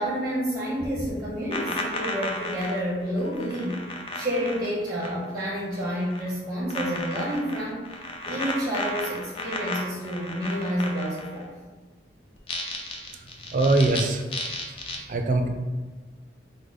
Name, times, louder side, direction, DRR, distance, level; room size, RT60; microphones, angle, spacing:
voice 1, 0.0-3.8 4.1-7.8 8.3-11.5, equal, 20° right, -5 dB, 0.7 m, -29 dB
sound 1, 0.8-5.5 5.7-6.3 6.7-11.4 12.4-14.0 14.3-15.0, left 2 dB, 30° left, 0.4 m, -34 dB
voice 2, 13.5-14.2 15.1-15.5, right 2 dB, 45° right, 5 dB, 0.4 m, -22 dB
4.8 x 2.1 x 3.9 m, 1.4 s
head